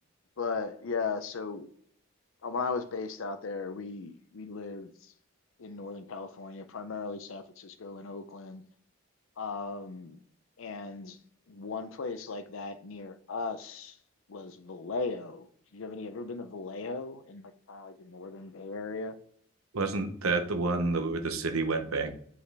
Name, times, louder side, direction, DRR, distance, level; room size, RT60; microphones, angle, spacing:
voice 1, 0.4-1.7 2.4-5.1 5.6-8.6 9.4-10.2 10.6-11.2 11.5-14.0 14.3-15.5 15.7-19.1, left 4 dB, 70° left, 10 dB, 0.5 m, -37 dB
voice 2, 19.7-22.1, right 3 dB, 85° right, 6 dB, 0.9 m, -29 dB
8.0 x 4.9 x 3.3 m, 0.62 s
head